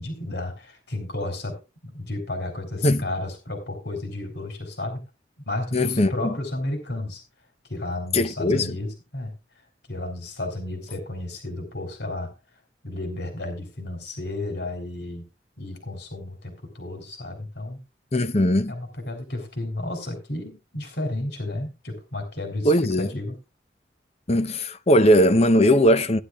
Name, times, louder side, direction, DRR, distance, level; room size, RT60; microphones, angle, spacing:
voice 1, 0.0-5.0 5.5-7.2 7.7-12.3 12.8-15.2 15.6-17.8 18.7-23.4, left 2 dB, 70° left, 3.8 m, -32 dB
voice 2, 5.7-6.3 8.1-8.8 18.1-18.7 22.6-23.1 24.3-26.2, equal, 35° left, 0.8 m, -19 dB
16.5 x 10.5 x 2.4 m
head